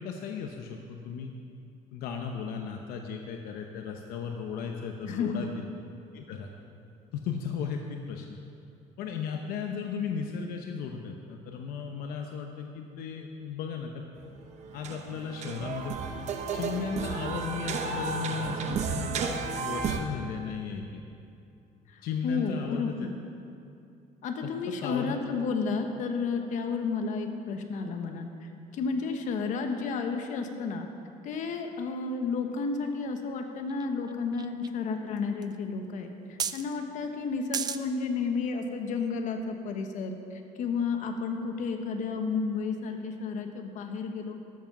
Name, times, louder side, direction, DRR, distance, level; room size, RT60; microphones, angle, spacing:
voice 1, 0.0-1.3 1.9-5.6 6.1-6.5 7.1-8.4 9.0-14.0 14.7-16.0 16.5-21.0 22.0-23.1 24.4-25.2, left 6 dB, 75° left, 3 dB, 0.8 m, -36 dB
voice 2, 5.0-5.4 21.9-23.2 24.2-30.9 31.2-44.4, left 4 dB, 55° left, 5 dB, 1.1 m, -32 dB
sound 1, 14.2-14.3 14.5-20.0, right 5 dB, 50° right, 0.8 m, -33 dB
sound 2, 33.2-33.3 33.7-34.7 35.2-35.3 35.4-35.5 36.4-36.7 37.5-37.8 38.5-38.6, right 7 dB, 25° right, 0.4 m, -32 dB
13.0 x 7.3 x 5.9 m, 2.5 s
cardioid pair, 145°, 15 cm